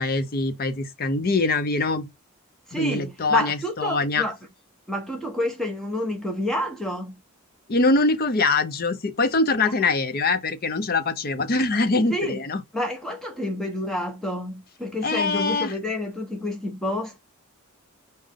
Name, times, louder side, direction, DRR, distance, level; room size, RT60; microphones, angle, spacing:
voice 1, 0.0-2.1 2.7-4.2 7.7-12.6 15.0-15.7, left 3 dB, 40° left, 0.6 m, -23 dB
voice 2, 2.7-4.4 4.9-7.2 12.1-12.4 12.7-17.2, left 1 dB, ahead, 1.2 m, -29 dB
4.2 x 3.6 x 3.5 m
head